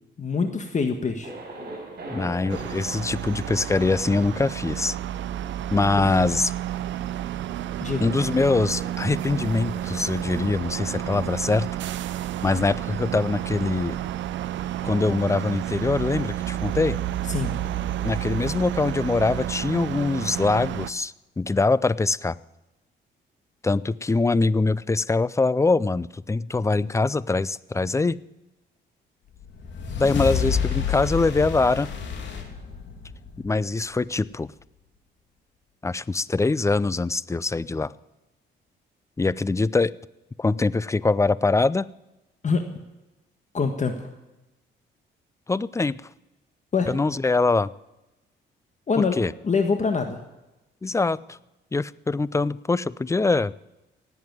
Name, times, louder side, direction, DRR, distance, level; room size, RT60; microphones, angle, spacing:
voice 1, 0.2-1.3 7.8-8.1 17.3-17.5 42.4-42.6 43.5-44.1 46.7-46.9 48.9-49.2 49.4-50.2, left 5 dB, 35° left, 6 dB, 1.5 m, -24 dB
Thunder, 1.2-13.0, right 2 dB, 50° right, 6.3 m, -43 dB
voice 2, 2.1-5.0 5.7-6.5 8.0-11.7 12.4-14.0 14.8-17.0 18.0-22.4 23.6-28.2 30.0-31.9 33.4-34.5 35.8-37.9 39.2-39.9 40.4-41.9 45.5-46.0 46.9-47.7 49.0-49.3 50.8-51.4 51.7-53.5, left 3 dB, 15° left, 20 dB, 0.4 m, -23 dB
sound 1, 2.5-20.9, right 12 dB, 70° right, 0.7 m, -31 dB
sound 2, 29.4-33.9, left 6 dB, 70° left, 2.8 m, -29 dB
18.0 x 8.1 x 9.4 m, 1.0 s
cardioid pair, 90°, 20 cm